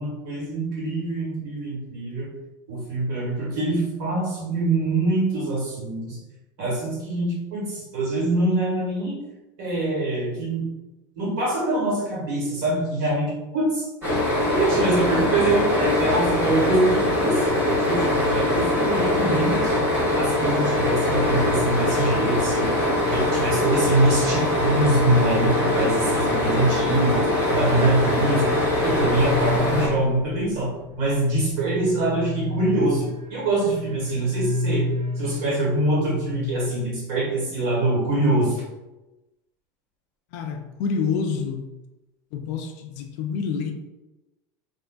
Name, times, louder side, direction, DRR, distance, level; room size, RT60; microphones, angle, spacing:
voice 1, 0.0-2.3 2.7-6.2 6.6-9.2 9.6-10.7 11.2-13.9 14.5-19.9 20.1-22.7 23.1-28.5 28.8-30.7 31.0-34.8 35.2-38.6, right 2 dB, 60° right, -4 dB, 1.4 m, -24 dB
sound 1, 14.0-29.9, left 1 dB, 20° right, 1.1 m, -22 dB
sound 2, 27.4-37.2, left 2 dB, 40° right, 0.4 m, -31 dB
voice 2, 40.3-41.7 42.3-43.7, left 5 dB, 50° left, 4 dB, 0.4 m, -27 dB
3.6 x 2.5 x 2.3 m, 1.0 s
supercardioid pair, 180°, 11 cm